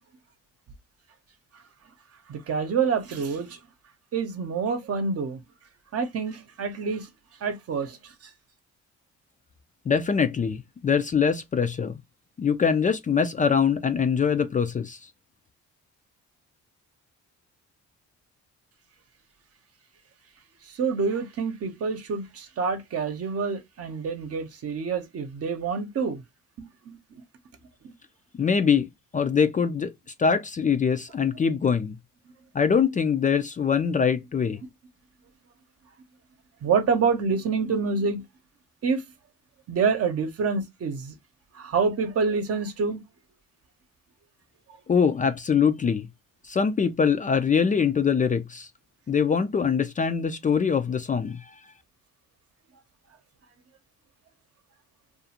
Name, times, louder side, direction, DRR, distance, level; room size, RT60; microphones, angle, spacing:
voice 1, 2.3-3.6 4.1-5.4 5.9-7.1 7.4-8.0 20.7-26.2 26.9-27.0 27.8-27.9 36.6-38.2 38.8-39.0 39.7-41.1 41.5-43.0, right 5 dB, 50° right, 0.8 m, -27 dB
voice 2, 9.9-11.9 12.4-15.1 28.4-29.9 30.2-32.0 32.5-34.6 44.9-46.1 46.4-48.7 49.1-51.5, left 6 dB, 25° left, 0.4 m, -23 dB
2.5 x 2.4 x 2.8 m
cardioid pair, 90°, 30 cm